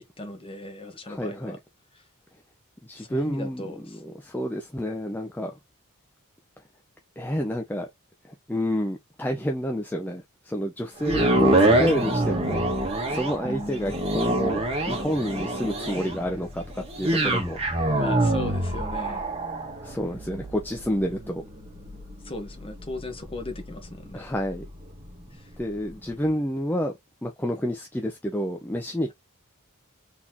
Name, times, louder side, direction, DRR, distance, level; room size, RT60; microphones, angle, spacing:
voice 1, 0.0-1.6 1.9-2.0 3.0-4.0 11.5-11.8 13.4-14.1 17.9-19.3 22.2-24.2 25.3-25.5, left 2 dB, 25° left, 1.2 m, -37 dB
voice 2, 1.1-1.6 2.8-5.5 7.2-7.9 8.5-11.5 11.8-12.6 13.1-17.6 19.8-21.4 24.1-24.6 25.6-26.9 27.2-29.1, equal, 10° left, 0.5 m, -29 dB
sound 1, 11.0-25.2 25.7-25.8, right 1 dB, 25° right, 1.4 m, -26 dB
4.1 x 3.6 x 2.9 m
head